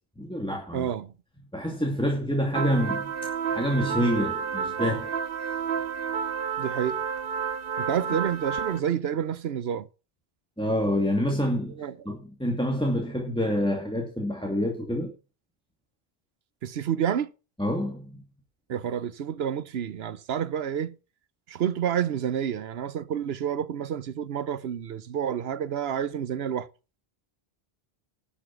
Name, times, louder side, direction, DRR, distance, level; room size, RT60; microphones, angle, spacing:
voice 1, 0.2-0.9 1.5-3.1 3.5-5.1 10.6-11.7 12.0-15.1 17.6-18.2, equal, 5° left, 2.4 m, -27 dB
voice 2, 0.7-1.1 6.6-7.0 7.8-9.9 11.8-12.0 16.6-17.3 18.7-21.0 21.5-26.7, right 9 dB, 80° right, 1.0 m, -29 dB
sound 1, 2.5-8.8, right 6 dB, 65° right, 1.2 m, -30 dB
12.0 x 7.3 x 6.0 m
omnidirectional pair, 1.0 m